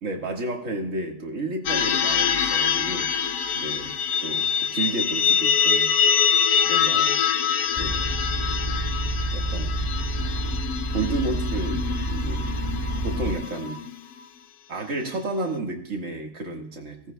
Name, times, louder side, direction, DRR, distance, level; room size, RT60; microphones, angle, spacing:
voice 1, 0.0-3.1 3.5-5.9 6.7-7.2 7.7-8.1 9.3-9.8 10.9-12.5 13.0-13.8 14.7-17.0, right 2 dB, 45° right, 1 dB, 2.0 m, -32 dB
sound 1, 1.7-14.2, left 7 dB, 70° left, 1.1 m, -25 dB
sound 2, 7.8-13.3, right 1 dB, 25° left, 1.6 m, -28 dB
16.5 x 15.5 x 2.3 m, 0.69 s
omnidirectional pair, 1.8 m